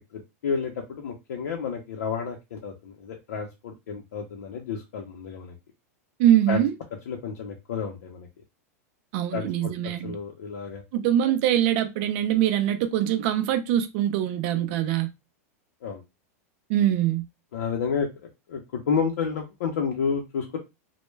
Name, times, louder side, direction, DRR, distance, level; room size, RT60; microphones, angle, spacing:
voice 1, 0.4-5.5 6.5-6.6 7.1-8.3 9.3-10.8 15.8-16.0 17.5-18.1 18.5-20.6, left 6 dB, 85° left, 0.6 m, -30 dB
voice 2, 6.2-6.7 9.1-10.2 10.9-15.1 16.7-17.2, right 11 dB, 50° right, 0.3 m, -23 dB
2.2 x 2.1 x 3.1 m
supercardioid pair, 150°, 8 cm